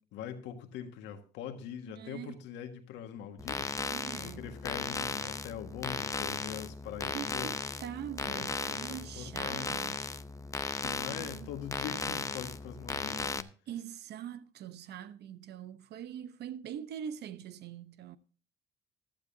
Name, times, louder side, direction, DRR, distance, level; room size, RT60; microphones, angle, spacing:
voice 1, 0.0-3.8 4.2-7.5 8.2-9.7 10.7-13.5, left 9 dB, 80° left, 1.7 m, -43 dB
voice 2, 1.9-2.3 3.8-4.5 7.1-10.1 11.1-11.5 13.7-18.2, right 9 dB, 65° right, 0.9 m, -43 dB
sound 1, 3.4-13.4, left 3 dB, 15° left, 0.6 m, -36 dB
14.5 x 12.5 x 2.7 m
supercardioid pair, 80°, 18 cm